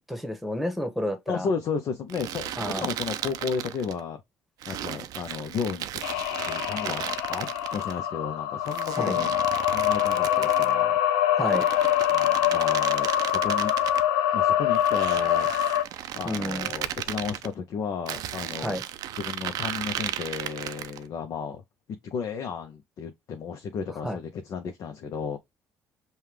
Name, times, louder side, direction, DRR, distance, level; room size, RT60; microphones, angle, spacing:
voice 1, 0.1-1.5 2.6-2.9 9.0-9.2 11.4-11.7 16.2-16.7 18.6-18.8 24.0-24.2, equal, ahead, 1.2 m, -30 dB
voice 2, 1.3-4.2 4.7-7.0 7.3-9.3 9.7-11.0 12.1-13.7 14.3-15.5 16.1-18.8 19.2-21.6 22.0-25.4, left 6 dB, 60° left, 0.7 m, -33 dB
sound 1, 2.1-4.0 4.6-7.9 8.7-10.8 11.4-14.1 14.7-17.5 18.1-21.0, right 12 dB, 70° right, 0.4 m, -35 dB
sound 2, 6.0-15.8, left 11 dB, 85° left, 0.4 m, -24 dB
5.5 x 2.3 x 3.3 m
supercardioid pair, 65°, 7 cm